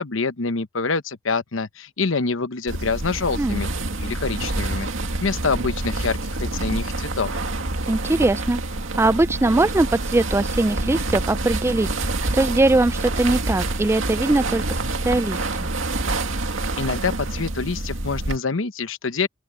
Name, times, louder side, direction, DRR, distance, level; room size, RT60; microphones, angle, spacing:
voice 1, 0.0-3.7 4.0-4.9 5.2-7.5 16.7-19.3, left 4 dB, 80° left, 1.0 m, -26 dB
sound 1, 2.7-18.4, right 2 dB, 85° right, 2.2 m, -27 dB
voice 2, 7.9-8.6 9.0-14.6 15.0-15.7, right 2 dB, 15° right, 0.3 m, -21 dB
open air
head